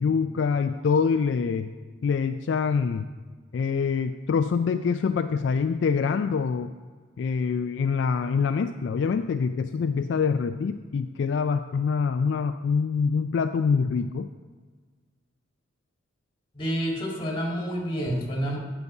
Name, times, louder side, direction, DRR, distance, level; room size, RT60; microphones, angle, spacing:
voice 1, 0.0-1.7 2.0-3.1 3.5-6.7 7.2-14.3, left 5 dB, 60° left, 8 dB, 0.3 m, -25 dB
voice 2, 16.5-18.6, equal, 25° left, 0 dB, 1.9 m, -28 dB
9.4 x 6.7 x 5.5 m, 1.5 s
head